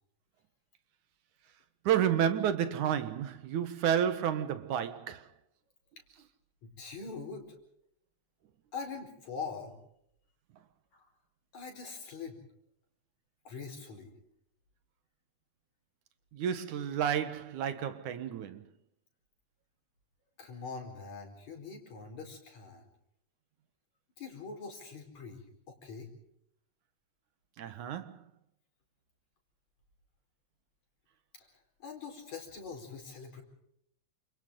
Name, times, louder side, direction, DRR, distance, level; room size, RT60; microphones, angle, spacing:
voice 1, 1.8-5.2 16.3-18.6 27.6-28.2, right 9 dB, 80° right, 2.8 m, -31 dB
voice 2, 6.6-7.6 8.7-9.8 10.9-11.1 11.5-12.4 13.4-14.1 20.4-22.8 24.2-26.1 31.4-33.4, left 5 dB, 65° left, 5.9 m, -43 dB
29.5 x 28.0 x 3.9 m
omnidirectional pair, 3.4 m